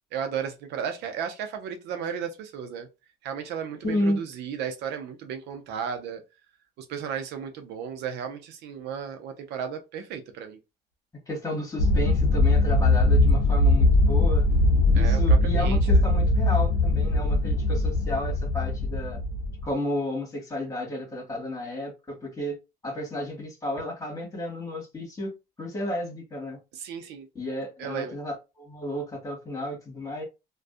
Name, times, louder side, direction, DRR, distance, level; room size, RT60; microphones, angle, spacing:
voice 1, 0.1-2.9 3.2-6.2 6.8-10.6 14.9-16.0 26.7-27.3 27.8-28.2, right 7 dB, 85° right, 0.6 m, -34 dB
voice 2, 3.8-4.2 11.3-14.4 14.9-19.2 19.6-22.6 22.8-25.3 25.6-26.6 27.3-30.2, left 1 dB, 20° left, 1.4 m, -32 dB
sound 1, 11.8-19.7, left 2 dB, 70° left, 0.7 m, -21 dB
2.5 x 2.3 x 2.3 m
cardioid pair, 110°, 17 cm